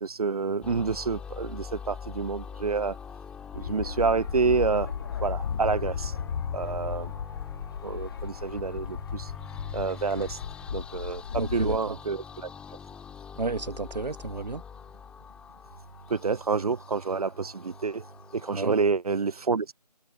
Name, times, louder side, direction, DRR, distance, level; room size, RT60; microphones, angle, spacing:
voice 1, 0.0-3.0 3.5-4.9 5.2-6.1 6.5-7.1 7.8-9.3 9.7-10.4 10.7-11.2 11.5-12.5 16.1-18.0 18.3-19.7, right 4 dB, 60° right, 0.7 m, -28 dB
sound 1, 0.6-18.9, left 6 dB, 5° left, 2.4 m, -44 dB
sound 2, 3.5-11.8, left 7 dB, 35° left, 2.1 m, -35 dB
voice 2, 11.3-12.0 13.4-14.6 18.5-18.8, right 3 dB, 75° right, 1.5 m, -32 dB
figure-of-eight pair, 160°, 21 cm